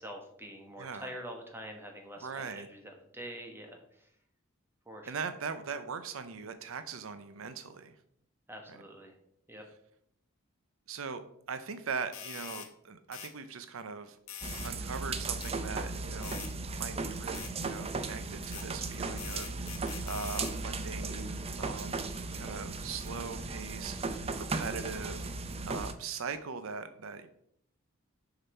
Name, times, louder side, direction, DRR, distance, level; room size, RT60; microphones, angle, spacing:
voice 1, 0.0-4.1 4.8-5.2 8.5-9.2 9.5-9.6, equal, 10° right, 2 dB, 1.4 m, -45 dB
voice 2, 0.8-1.1 2.2-2.7 5.1-7.9 10.9-11.2 11.5-14.2 14.6-16.4 16.7-25.3 25.7-27.3, right 5 dB, 70° right, 11 dB, 0.6 m, -40 dB
sound 1, 12.1-12.7 13.1-13.3 14.3-14.7 15.4-15.5 16.2-16.5 17.3-17.5 18.5-18.7 19.2-20.6, left 9 dB, 75° left, 1.1 m, -44 dB
sound 2, 14.4-25.9, right 3 dB, 30° right, 0.6 m, -36 dB
6.6 x 5.9 x 4.4 m, 0.69 s
head